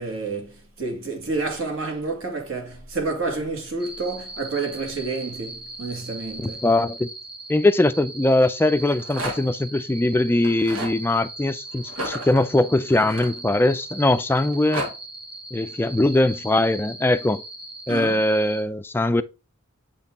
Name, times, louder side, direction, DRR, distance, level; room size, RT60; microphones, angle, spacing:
voice 1, 0.0-6.6 17.9-18.2, right 3 dB, 70° right, 2.2 m, -29 dB
sound 1, 3.8-18.6, right 2 dB, 25° right, 1.1 m, -39 dB
voice 2, 6.4-7.1 7.5-14.8 15.5-17.4 17.9-19.2, left 2 dB, 10° left, 0.3 m, -21 dB
Rattle, 8.7-9.6 10.4-11.0 11.9-13.8 14.4-14.9, right 1 dB, 85° right, 2.3 m, -32 dB
7.8 x 4.3 x 3.5 m
head